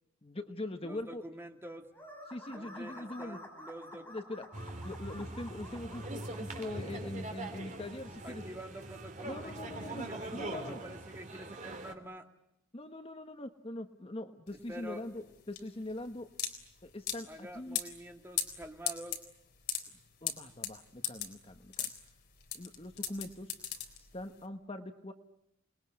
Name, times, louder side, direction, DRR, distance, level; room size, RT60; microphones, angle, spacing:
voice 1, 0.2-1.2 2.3-3.4 4.1-4.5 4.8-8.4 9.2-10.1 10.3-10.8 12.7-16.3 16.8-17.8 20.2-21.9 22.5-23.5 24.1-25.1, left 1 dB, 30° left, 7 dB, 1.2 m, -42 dB
voice 2, 0.8-1.9 2.5-4.1 8.2-12.3 14.7-15.0 17.3-19.2, right 1 dB, 10° right, 4 dB, 2.2 m, -47 dB
sound 1, 1.9-6.7, left 1 dB, 10° left, 6.8 m, -50 dB
sound 2, 4.5-11.9, right 2 dB, 40° right, 2.9 m, -42 dB
sound 3, 14.5-24.4, left 9 dB, 55° left, 3.8 m, -39 dB
28.5 x 21.0 x 9.7 m, 0.79 s
head